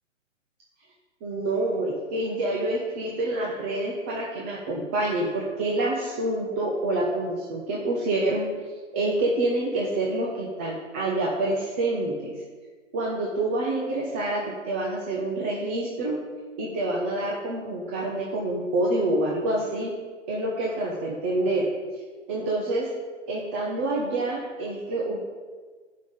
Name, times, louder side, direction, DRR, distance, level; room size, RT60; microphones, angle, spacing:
voice 1, 1.2-8.5 8.9-12.3 12.9-16.2 16.6-19.9 20.3-21.7 22.3-22.9 23.3-25.2, right 2 dB, 10° right, -3 dB, 0.5 m, -27 dB
10.0 x 5.6 x 6.8 m, 1.5 s
figure-of-eight pair, 130°, 39 cm